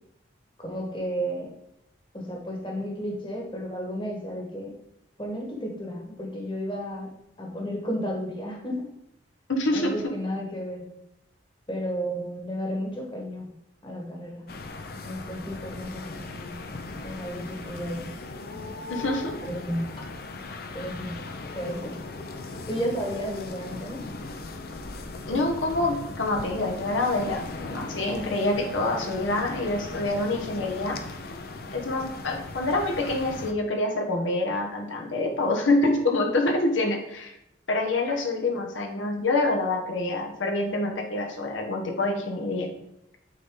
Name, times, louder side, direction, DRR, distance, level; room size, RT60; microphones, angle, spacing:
voice 1, 0.6-1.5 2.1-4.7 5.2-7.1 7.4-8.9 9.7-10.9 11.7-13.5 13.8-14.5 15.0-16.6 17.0-18.2 19.4-20.1 20.7-22.1 22.7-24.0, equal, 25° left, 0 dB, 1.4 m, -33 dB
voice 2, 9.5-9.9 18.9-19.3 25.3-31.0 31.7-37.3 37.7-42.7, left 2 dB, 85° left, 2 dB, 1.1 m, -26 dB
sound 1, 14.5-33.5, left 3 dB, 50° left, 0.6 m, -38 dB
9.3 x 4.1 x 3.8 m, 0.82 s
head